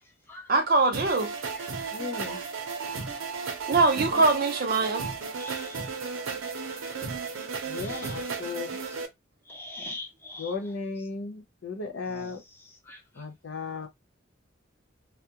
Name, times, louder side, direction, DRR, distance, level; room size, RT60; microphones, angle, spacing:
voice 1, 0.5-1.3 3.7-5.0, right 3 dB, 50° right, 0.5 m, -22 dB
sound 1, 0.9-9.1, right 5 dB, 85° right, 0.7 m, -34 dB
voice 2, 1.9-2.4 3.9-4.3 4.5-4.7 7.7-8.9 10.4-12.4 13.1-13.9, left 4 dB, 75° left, 0.7 m, -36 dB
voice 3, 5.4-5.9 7.7-8.2 9.5-10.5 12.1-12.3 12.9-13.0, left 2 dB, 10° left, 0.6 m, -42 dB
2.3 x 2.1 x 2.8 m
head